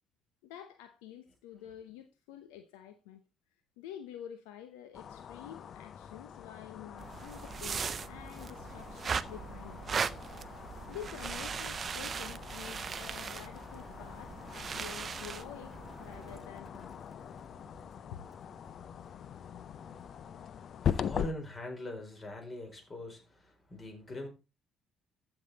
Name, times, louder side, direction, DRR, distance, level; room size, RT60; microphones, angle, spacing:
voice 1, 0.4-3.2 3.8-9.9 10.9-17.2 18.1-18.2, left 10 dB, 75° left, 0.9 m, -48 dB
sound 1, 4.9-21.3, left 8 dB, 55° left, 0.6 m, -42 dB
sound 2, 7.0-16.4, right 6 dB, 40° right, 0.7 m, -39 dB
Livestock farm animals working animals, 13.7-20.4, right 3 dB, 25° right, 1.9 m, -60 dB
voice 2, 19.8-24.3, left 1 dB, 30° left, 4.7 m, -43 dB
15.0 x 5.8 x 4.1 m
hypercardioid pair, 50°, 0 cm